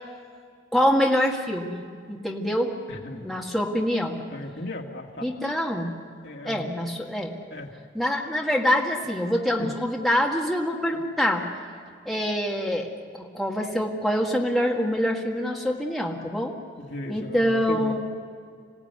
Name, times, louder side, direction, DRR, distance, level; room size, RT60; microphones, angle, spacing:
voice 1, 0.7-2.7 3.1-4.2 5.2-5.9 6.4-7.4 7.9-11.5 12.1-12.9 13.1-16.5 17.1-18.0, equal, ahead, -2 dB, 1.9 m, -25 dB
voice 2, 2.9-3.2 4.3-5.3 6.2-6.7 7.5-7.7 9.6-9.7 10.9-11.0 16.8-18.0, left 1 dB, 60° left, 1 dB, 2.2 m, -36 dB
26.5 x 17.5 x 9.5 m, 2.2 s
head